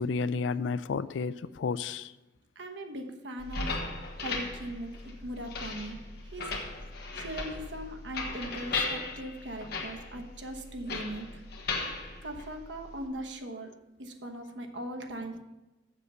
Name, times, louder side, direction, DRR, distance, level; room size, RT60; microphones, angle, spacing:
voice 1, 0.0-2.1, left 4 dB, 75° left, 0.4 m, -31 dB
voice 2, 2.5-3.8 4.2-6.0 6.2-6.7 7.1-11.4 12.2-13.7 14.0-15.4, right 1 dB, 70° right, 1.2 m, -40 dB
sound 1, 3.4-13.1, left 3 dB, 60° left, 1.4 m, -37 dB
7.5 x 6.8 x 6.6 m
head